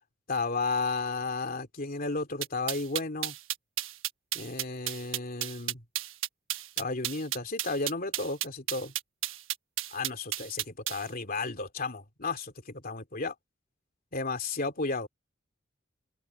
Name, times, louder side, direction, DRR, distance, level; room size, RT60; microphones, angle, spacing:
voice 1, 0.3-3.4 4.3-5.8 6.8-8.9 9.9-13.3 14.1-15.1, left 3 dB, 45° left, 2.9 m, -33 dB
sound 1, 2.4-11.0, right 13 dB, 80° right, 1.3 m, -33 dB
open air
head